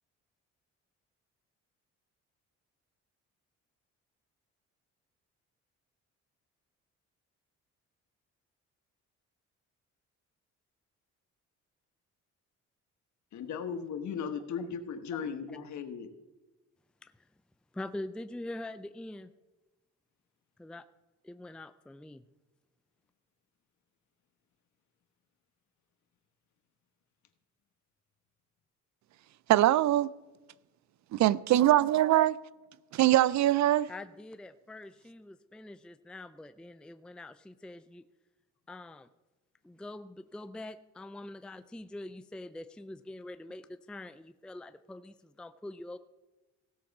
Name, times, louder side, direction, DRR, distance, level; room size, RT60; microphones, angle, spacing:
voice 1, 13.3-16.1, left 6 dB, 70° left, 1.4 m, -37 dB
voice 2, 17.7-19.3 20.6-20.9 21.2-22.2 33.9-38.0 38.7-39.1 39.6-46.0, left 1 dB, 5° left, 0.4 m, -44 dB
voice 3, 29.5-30.1 31.1-32.4 32.9-33.9, right 14 dB, 65° right, 0.5 m, -23 dB
16.5 x 7.0 x 5.3 m
cardioid pair, 90°, 30 cm